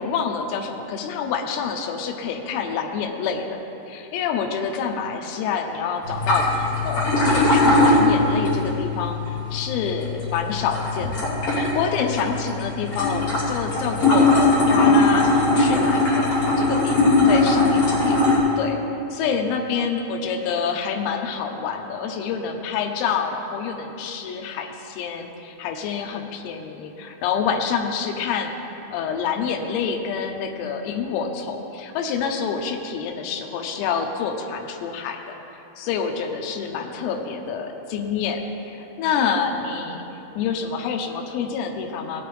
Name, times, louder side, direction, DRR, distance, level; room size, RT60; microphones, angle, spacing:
voice 1, 0.0-3.6 3.9-18.2 18.6-18.8 19.1-35.2 35.8-40.0 40.4-42.3, left 6 dB, 85° left, 2 dB, 3.6 m, -27 dB
sound 1, 6.0-18.4, left 2 dB, 40° left, 3.4 m, -20 dB
18.5 x 8.7 x 3.4 m, 2.9 s
omnidirectional pair, 6.0 m